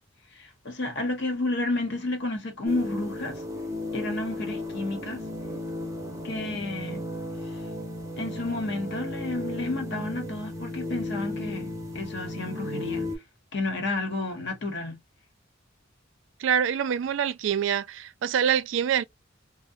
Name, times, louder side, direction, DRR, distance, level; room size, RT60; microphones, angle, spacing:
voice 1, 0.4-3.4 3.9-5.2 6.2-7.0 8.2-13.0 13.5-15.0, left 2 dB, 60° left, 1.0 m, -31 dB
sound 1, 2.7-13.2, left 1 dB, 15° right, 0.7 m, -35 dB
voice 2, 16.4-19.0, right 8 dB, 65° right, 0.3 m, -25 dB
2.7 x 2.1 x 2.4 m
head